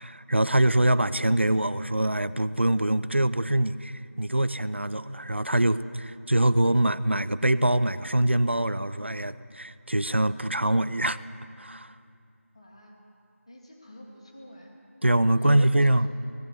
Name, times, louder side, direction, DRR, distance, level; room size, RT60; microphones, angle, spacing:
voice 1, 0.0-11.2 11.6-11.9 15.0-16.1, right 1 dB, 50° right, 15 dB, 0.7 m, -24 dB
voice 2, 12.5-13.0 13.5-14.8 15.3-16.1, equal, 25° left, -1 dB, 2.1 m, -48 dB
25.0 x 19.0 x 7.1 m, 2.5 s
figure-of-eight pair, 175°, 8 cm